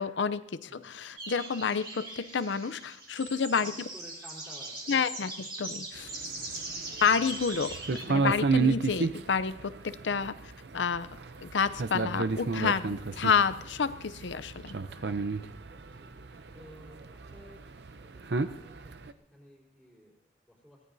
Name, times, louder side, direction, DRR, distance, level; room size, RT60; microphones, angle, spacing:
voice 1, 0.0-3.9 4.9-6.1 7.0-7.7 8.1-10.3 10.7-14.7, left 6 dB, 80° left, 14 dB, 0.6 m, -29 dB
sound 1, 1.2-8.1, right 2 dB, 25° right, 2.6 m, -41 dB
voice 2, 3.5-5.0 7.6-7.8 10.1-10.4 15.8-16.1 16.5-17.0 17.3-17.6 18.0-20.8, equal, 5° right, -7 dB, 4.1 m, -54 dB
sound 2, 5.9-19.1, right 4 dB, 65° right, 0.6 m, -32 dB
23.0 x 17.5 x 2.7 m, 0.82 s
head